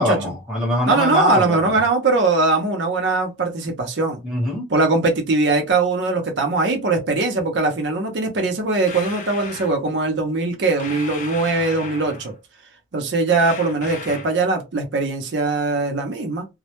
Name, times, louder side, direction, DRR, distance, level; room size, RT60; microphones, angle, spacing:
voice 1, 0.0-1.7 4.2-4.7, left 1 dB, 5° right, 0.9 m, -23 dB
voice 2, 0.9-4.2 4.7-12.3 12.9-16.5, right 3 dB, 75° right, 0.6 m, -21 dB
sound 1, 8.9-9.8 10.8-12.4 13.4-14.4, left 4 dB, 40° left, 0.4 m, -35 dB
2.1 x 2.1 x 2.9 m
head